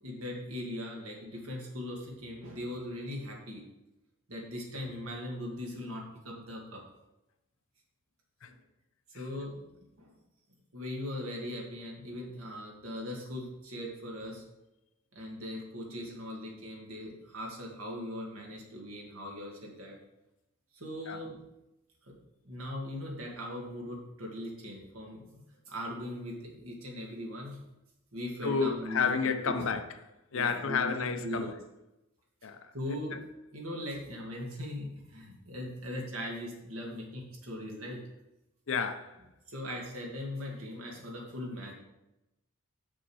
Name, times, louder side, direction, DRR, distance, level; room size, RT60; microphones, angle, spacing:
voice 1, 0.0-3.6 4.3-6.8 8.5-8.6 9.1-10.1 10.7-14.4 15.1-20.0 20.7-21.4 22.0-22.2 22.4-25.4 25.7-27.6 28.1-29.1 29.5-29.7 30.3-31.5 32.7-33.2 33.5-38.0 39.5-41.7, left 1 dB, 70° right, 2.0 m, -40 dB
voice 2, 28.4-29.8 30.3-31.5 32.4-32.7 38.7-39.1, left 5 dB, 65° left, 0.7 m, -30 dB
6.4 x 6.3 x 4.8 m
head